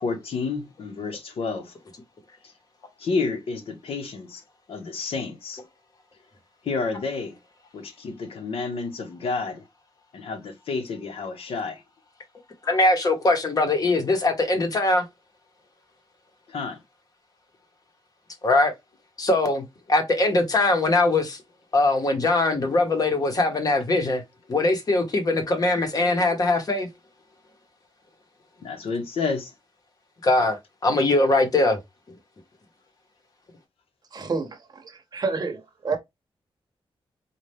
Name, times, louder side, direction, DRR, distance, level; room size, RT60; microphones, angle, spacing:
voice 1, 0.0-1.7 3.0-4.4 4.7-5.6 6.6-7.4 7.7-9.6 10.1-11.8 16.5-16.8 28.6-29.5, left 4 dB, 85° left, 1.0 m, -30 dB
voice 2, 12.6-15.1 18.4-18.7 19.2-21.4 21.7-24.2 24.5-26.9 30.2-31.8, left 2 dB, 40° left, 0.9 m, -21 dB
voice 3, 34.1-36.0, right 4 dB, 45° right, 0.8 m, -29 dB
4.1 x 2.3 x 3.3 m
wide cardioid pair, 175°, 10 cm